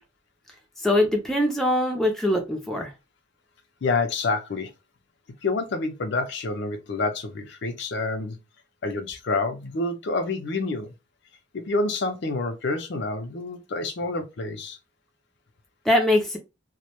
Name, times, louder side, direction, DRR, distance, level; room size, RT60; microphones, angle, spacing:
voice 1, 0.8-2.9 15.9-16.4, left 1 dB, ahead, 0.4 m, -22 dB
voice 2, 3.8-4.7 5.4-8.4 8.8-10.9 11.5-14.8, left 3 dB, 55° left, 0.5 m, -28 dB
2.1 x 2.1 x 2.8 m
head